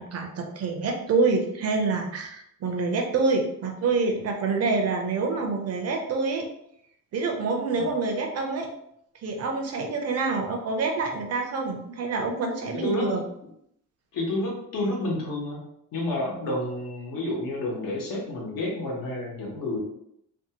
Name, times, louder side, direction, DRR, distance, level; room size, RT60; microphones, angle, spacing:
voice 1, 0.0-6.5 7.1-8.7 9.2-13.2, right 4 dB, 50° right, 3 dB, 0.5 m, -26 dB
voice 2, 12.7-13.2 14.1-15.6 15.9-19.8, left 1 dB, 75° left, -2 dB, 1.0 m, -30 dB
2.6 x 2.3 x 2.8 m, 0.75 s
cardioid pair, 170°, 34 cm